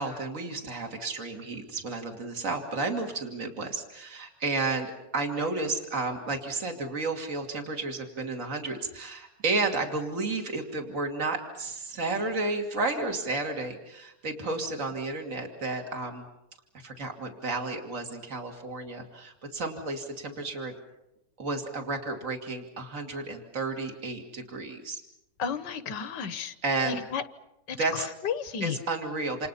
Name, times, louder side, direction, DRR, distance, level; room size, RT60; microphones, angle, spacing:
voice 1, 0.0-16.2 16.7-20.7 21.4-25.0 26.6-27.0 27.8-28.1 28.6-29.5, right 3 dB, 45° right, 3 dB, 3.0 m, -32 dB
voice 2, 25.4-26.6 26.9-27.2 27.7-28.8, left 6 dB, 80° left, 12 dB, 1.8 m, -33 dB
28.5 x 28.0 x 5.6 m, 0.87 s
omnidirectional pair, 1.9 m